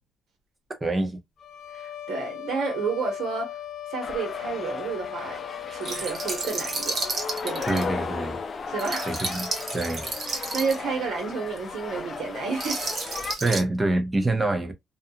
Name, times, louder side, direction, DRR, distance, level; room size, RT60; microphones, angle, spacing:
voice 1, 0.7-1.2 7.7-8.4 9.1-10.1 13.4-14.7, right 2 dB, 20° right, 0.8 m, -26 dB
sound 1, 1.4-7.4, left 11 dB, 70° left, 0.8 m, -38 dB
voice 2, 1.7-3.6 3.9-7.0 7.4-7.8 8.7-9.2 10.3-12.8 13.4-13.6, right 5 dB, 70° right, 1.2 m, -31 dB
sound 2, 4.0-13.3, left 5 dB, 45° left, 0.4 m, -35 dB
sound 3, 5.8-7.8 8.8-10.8 11.6-11.7 12.5-13.6, right 3 dB, 45° right, 1.1 m, -32 dB
2.5 x 2.3 x 2.7 m
cardioid pair, 90°, 0 cm